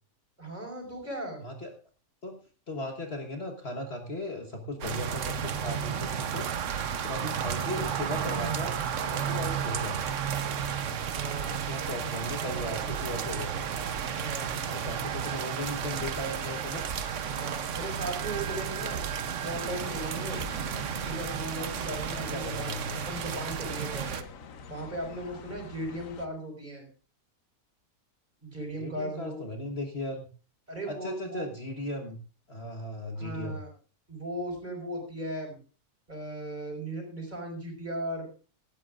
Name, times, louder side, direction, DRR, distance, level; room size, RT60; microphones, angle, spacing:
voice 1, 0.4-1.4 7.1-7.4 11.1-11.6 14.1-14.6 17.3-19.0 19.4-20.4 21.0-24.3 24.7-26.8 28.4-29.4 30.7-31.5 33.2-33.7 34.1-35.6 36.1-38.3, right 1 dB, 30° right, 2 dB, 5.0 m, -37 dB
voice 2, 1.4-1.7 2.2-2.4 2.7-6.5 6.9-10.1 11.4-13.6 14.7-16.8 22.2-23.0 28.8-30.2 30.9-32.2 32.5-33.6, left 1 dB, 45° left, 3 dB, 1.6 m, -37 dB
sound 1, 4.8-24.2, right 8 dB, 60° right, 1.1 m, -33 dB
sound 2, 9.3-21.2, right 10 dB, 85° right, 1.5 m, -48 dB
sound 3, 19.5-26.3, left 5 dB, 60° left, 1.3 m, -46 dB
17.5 x 13.0 x 2.5 m, 0.35 s
omnidirectional pair, 1.6 m